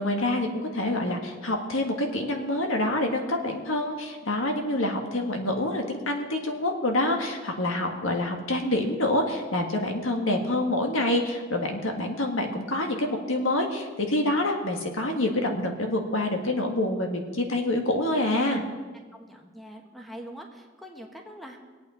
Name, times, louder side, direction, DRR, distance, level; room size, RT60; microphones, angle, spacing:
voice 1, 0.0-18.6, left 1 dB, 90° left, 2 dB, 1.8 m, -27 dB
voice 2, 19.1-21.6, equal, ahead, 2 dB, 1.3 m, -43 dB
23.0 x 8.6 x 4.4 m, 1.4 s
head